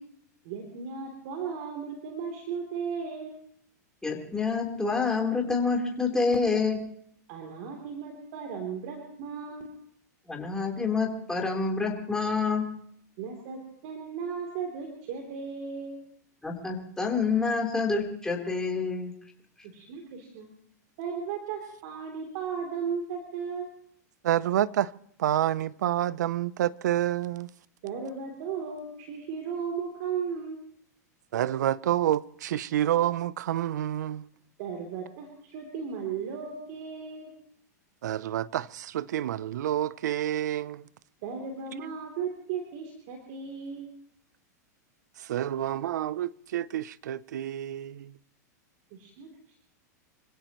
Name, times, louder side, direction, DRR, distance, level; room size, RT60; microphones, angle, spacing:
voice 1, 0.4-3.4 7.3-9.7 13.2-16.1 19.6-20.5 21.0-23.8 27.8-30.6 34.6-37.3 41.2-43.9 48.9-49.3, right 6 dB, 60° right, 3.2 m, -36 dB
voice 2, 4.0-6.8 10.3-12.7 16.4-19.1, left 4 dB, 5° left, 3.7 m, -27 dB
voice 3, 24.2-24.9 25.2-27.5 31.3-34.3 38.0-40.8 45.3-48.1, right 12 dB, 80° right, 0.6 m, -28 dB
27.0 x 16.0 x 3.1 m
hypercardioid pair, 120°, 9 cm